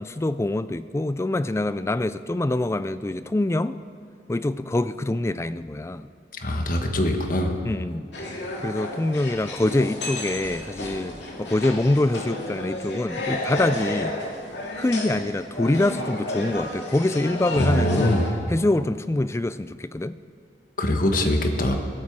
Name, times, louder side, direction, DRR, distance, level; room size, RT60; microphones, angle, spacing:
voice 1, 0.0-3.8 4.3-6.1 7.6-8.1 8.6-11.1 11.4-14.2 14.8-18.2 18.5-20.2, left 2 dB, 15° left, 14 dB, 0.3 m, -25 dB
voice 2, 6.4-7.5 17.6-18.3 20.8-21.8, left 1 dB, 50° left, 4 dB, 1.4 m, -22 dB
sound 1, 8.1-18.3, left 1 dB, 90° left, 2.3 m, -32 dB
22.0 x 13.0 x 4.7 m, 2.3 s
head